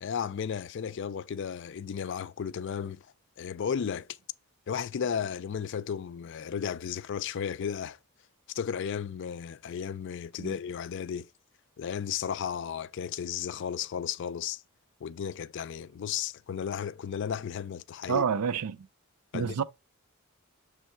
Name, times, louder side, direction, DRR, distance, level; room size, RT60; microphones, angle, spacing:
voice 1, 0.0-3.1 3.4-4.1 4.7-8.0 8.5-11.3 11.8-14.6 15.0-18.2 19.3-19.6, left 7 dB, 55° left, 0.3 m, -34 dB
voice 2, 18.1-18.9 19.3-19.6, right 6 dB, 90° right, 0.5 m, -28 dB
6.4 x 3.4 x 4.4 m
head